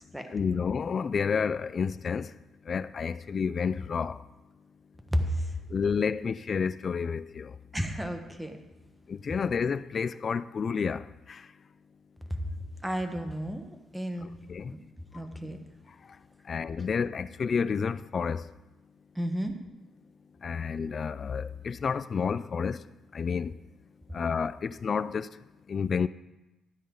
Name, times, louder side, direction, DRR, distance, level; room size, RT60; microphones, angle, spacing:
voice 1, 0.3-2.3 2.7-4.2 5.7-7.5 9.1-11.4 14.2-14.7 16.5-18.4 20.4-22.8 23.1-23.5 24.1-25.3 25.7-26.1, left 6 dB, 45° left, 0.4 m, -30 dB
voice 2, 5.1-5.6 7.7-8.6 12.3-12.5 12.8-14.3 14.7-14.8 15.1-15.6 19.1-19.5, equal, 5° right, 1.3 m, -32 dB
12.5 x 9.4 x 3.9 m
cardioid pair, 90°, 0 cm